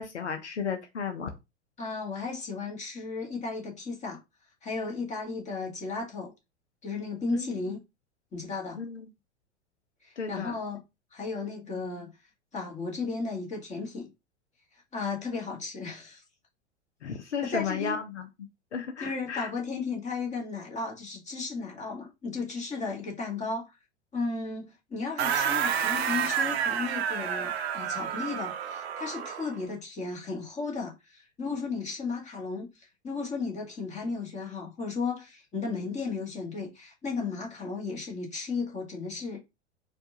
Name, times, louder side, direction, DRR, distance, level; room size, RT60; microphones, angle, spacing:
voice 1, 0.0-1.3 7.3-7.5 8.8-9.0 10.2-10.5 17.0-18.3 18.7-19.5, left 6 dB, 75° left, 0.7 m, -33 dB
voice 2, 1.8-4.2 4.6-6.3 6.8-7.8 8.3-8.8 10.0-10.8 11.1-12.1 12.5-14.1 14.9-16.2 17.4-18.0 19.0-23.7 24.1-39.4, left 4 dB, 20° left, 1.5 m, -34 dB
sound 1, 25.2-29.6, right 8 dB, 60° right, 0.7 m, -29 dB
4.4 x 2.5 x 2.7 m
figure-of-eight pair, 90°, 35 cm